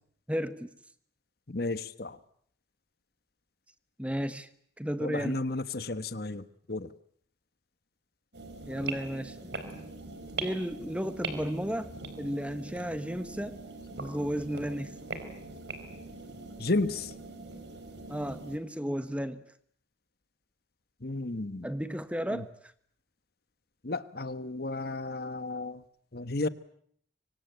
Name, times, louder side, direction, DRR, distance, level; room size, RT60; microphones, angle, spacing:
voice 1, 0.3-0.7 4.0-4.5 4.8-5.4 8.7-9.4 10.4-13.6 14.0-15.0 18.1-19.4 21.6-22.5, equal, 5° right, 12 dB, 1.2 m, -33 dB
voice 2, 1.5-2.2 5.0-6.9 16.6-17.1 21.0-21.7 22.3-22.4 23.8-25.8 26.1-26.5, left 2 dB, 55° left, 14 dB, 1.2 m, -33 dB
sound 1, 8.3-18.6, right 3 dB, 65° right, 4.6 m, -42 dB
25.0 x 25.0 x 9.2 m, 0.64 s
head